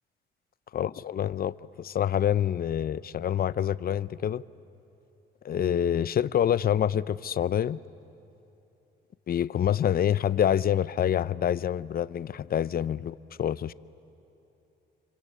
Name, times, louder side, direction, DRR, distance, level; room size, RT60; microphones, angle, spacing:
voice 1, 0.7-4.4 5.4-7.8 9.3-13.7, left 10 dB, 50° left, 0.6 m, -27 dB
29.0 x 25.0 x 8.3 m
cardioid pair, 90°, 20 cm